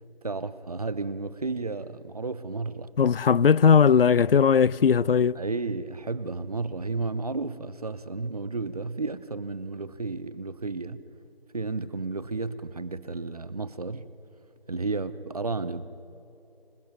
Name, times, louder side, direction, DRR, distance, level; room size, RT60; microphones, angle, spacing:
voice 1, 0.2-2.9 5.4-11.0 11.5-14.1 14.7-15.9, right 3 dB, 40° right, 0.7 m, -32 dB
voice 2, 3.0-5.4, left 6 dB, 65° left, 0.5 m, -19 dB
25.5 x 21.5 x 5.8 m
figure-of-eight pair, 165°, 31 cm